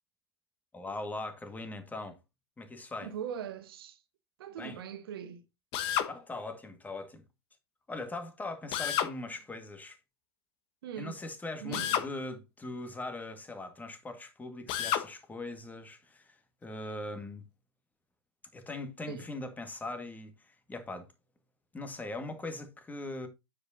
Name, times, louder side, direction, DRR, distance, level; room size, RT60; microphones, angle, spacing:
voice 1, 0.7-2.2 2.6-3.1 4.6-4.8 6.1-7.2 7.9-10.0 11.0-17.4 18.5-21.1 21.7-23.3, left 2 dB, 10° left, 1.8 m, -40 dB
voice 2, 3.0-4.0 4.4-5.4 10.8-11.2 11.6-12.0 19.1-19.2, right 8 dB, 65° right, 1.3 m, -40 dB
Drill, 5.7-6.1 8.7-9.1 11.7-12.1 14.7-15.1, left 10 dB, 45° left, 1.1 m, -30 dB
9.1 x 7.5 x 2.7 m
figure-of-eight pair, 90°, 14 cm